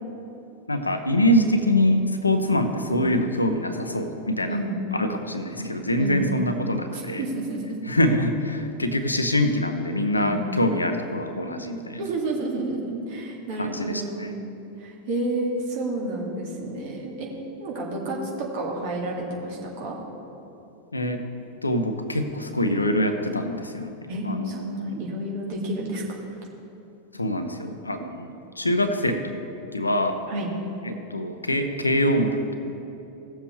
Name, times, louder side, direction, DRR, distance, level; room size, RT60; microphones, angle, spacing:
voice 1, 0.7-4.6 4.9-7.2 7.9-12.1 13.6-14.3 20.9-21.2 21.6-23.9 24.2-25.0 27.1-28.3 28.6-29.3 29.7-30.2 30.8-32.6, left 1 dB, 80° left, 7 dB, 0.7 m, -24 dB
voice 2, 4.5-4.8 6.0-6.2 6.9-7.8 10.1-10.4 12.0-14.3 14.8-17.3 17.6-20.0 24.1-26.2 30.3-30.5, right 2 dB, 50° right, -2 dB, 2.2 m, -30 dB
17.5 x 7.3 x 3.2 m, 3.0 s
figure-of-eight pair, 90°, 0 cm